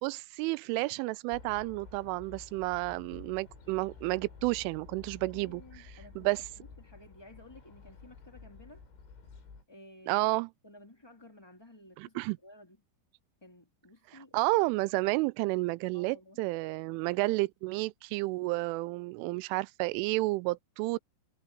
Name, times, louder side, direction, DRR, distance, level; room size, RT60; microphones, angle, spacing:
voice 1, 0.0-5.6 6.2-6.4 10.1-10.5 12.0-12.4 14.3-21.0, right 22 dB, 90° right, 3.1 m, -31 dB
Hercules Flyby, 1.3-9.6, left 4 dB, 90° left, 9.5 m, -52 dB
voice 2, 5.3-8.8 9.7-10.1 10.6-12.8 13.4-14.4 15.9-16.4, left 1 dB, 5° left, 2.1 m, -54 dB
omnidirectional pair, 5.5 m